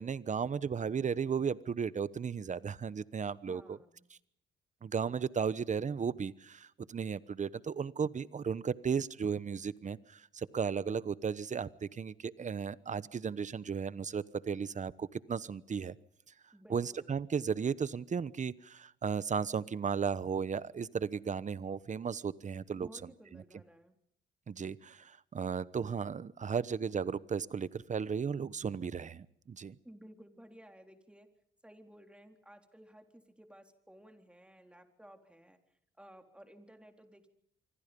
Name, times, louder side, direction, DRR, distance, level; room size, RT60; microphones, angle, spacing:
voice 1, 0.0-3.8 4.8-16.0 16.7-22.9 24.5-29.8, right 6 dB, 40° right, 17 dB, 1.1 m, -35 dB
voice 2, 3.5-4.1 16.5-17.3 22.8-24.0 29.8-31.3 31.6-35.6 36.0-37.3, equal, 5° right, 5 dB, 4.0 m, -56 dB
26.0 x 25.0 x 5.4 m, 0.70 s
cardioid pair, 90°, 20 cm